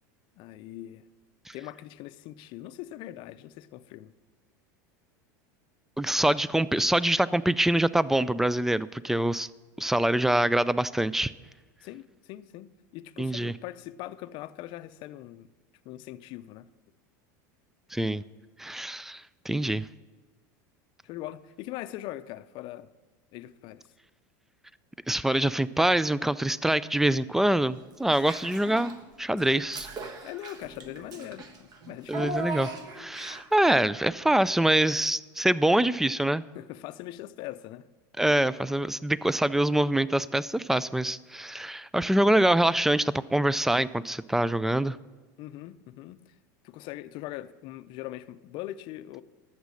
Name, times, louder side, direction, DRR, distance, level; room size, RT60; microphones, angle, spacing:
voice 1, 0.4-1.0 1.5-4.1 11.8-15.5 15.8-16.7 21.0-22.9 23.3-23.9 30.2-32.4 36.5-37.9 45.4-46.3 46.6-49.2, left 14 dB, 55° left, 0.5 m, -41 dB
voice 2, 6.0-9.5 9.8-11.3 13.2-13.5 17.9-18.2 18.6-19.9 25.1-28.9 29.2-29.9 32.1-32.7 32.9-36.4 38.2-45.0, right 1 dB, 5° right, 0.3 m, -25 dB
Child speech kid speaking / Bathtub (filling or washing), 28.1-29.0 29.4-33.6, right 2 dB, 40° right, 1.3 m, -38 dB
11.5 x 7.4 x 6.3 m
supercardioid pair, 105°, 10 cm